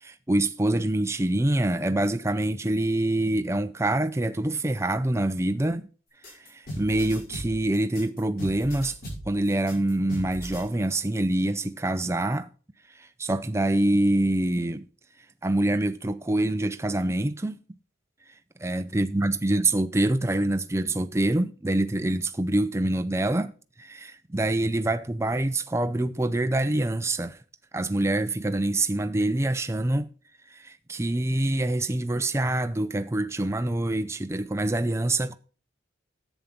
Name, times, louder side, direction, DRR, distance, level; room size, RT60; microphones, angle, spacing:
voice 1, 0.0-5.9 6.3-9.0 9.3-12.5 13.0-14.9 15.4-17.6 18.6-23.5 23.8-27.4 27.7-30.1 30.5-35.4, right 1 dB, 15° right, 0.5 m, -25 dB
sound 1, 6.2-10.7, equal, 50° left, 6.7 m, -38 dB
11.0 x 8.1 x 3.8 m
head